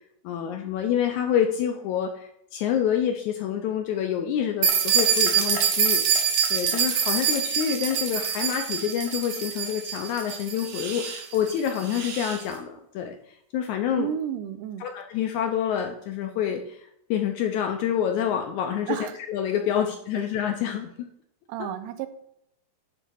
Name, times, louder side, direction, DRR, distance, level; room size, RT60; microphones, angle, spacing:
voice 1, 0.2-6.0 6.5-14.1 14.8-20.9 21.6-21.7, left 9 dB, 80° left, 5 dB, 1.7 m, -27 dB
sound 1, 4.6-12.4, right 7 dB, 65° right, 2.3 m, -25 dB
voice 2, 13.9-14.8 18.9-19.1 19.8-19.9 20.2-20.3 21.5-22.1, right 10 dB, 80° right, 10 dB, 2.1 m, -31 dB
9.3 x 3.6 x 5.5 m, 0.75 s
omnidirectional pair, 3.9 m